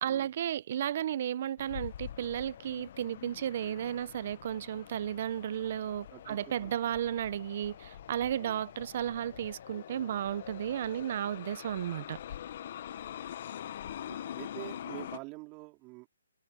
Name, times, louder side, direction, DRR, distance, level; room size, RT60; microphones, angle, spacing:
voice 1, 0.0-12.2, right 10 dB, 40° right, 0.7 m, -34 dB
sound 1, 1.6-15.2, left 10 dB, 45° left, 1.2 m, -45 dB
voice 2, 6.1-6.7 8.4-8.6 14.1-16.1, right 25 dB, 20° right, 3.7 m, -46 dB
hypercardioid pair, 160°, 0 cm